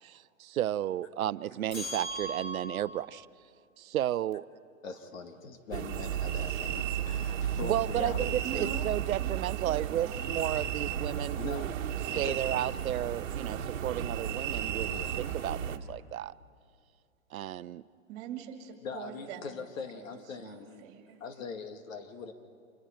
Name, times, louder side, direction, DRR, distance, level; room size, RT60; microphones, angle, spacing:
voice 1, 0.0-3.3 3.8-4.4 7.6-11.7 12.2-14.9 15.2-16.3 17.3-17.8, right 12 dB, 85° right, 18 dB, 0.6 m, -33 dB
sound 1, 1.7-3.1, right 1 dB, 30° left, 6.6 m, -38 dB
voice 2, 4.8-8.8 11.4-11.7 12.1-12.8 14.9-15.2 18.8-20.9 21.2-22.3, left 5 dB, 70° left, 6 dB, 2.2 m, -42 dB
sound 2, 5.7-15.8, right 9 dB, 65° right, 1.4 m, -34 dB
voice 3, 8.4-8.9 9.2-11.7 12.1-13.0 18.1-19.6 20.0-21.2, right 9 dB, 35° right, 4 dB, 2.7 m, -45 dB
27.0 x 21.5 x 4.5 m, 2.3 s
hypercardioid pair, 140°, 41 cm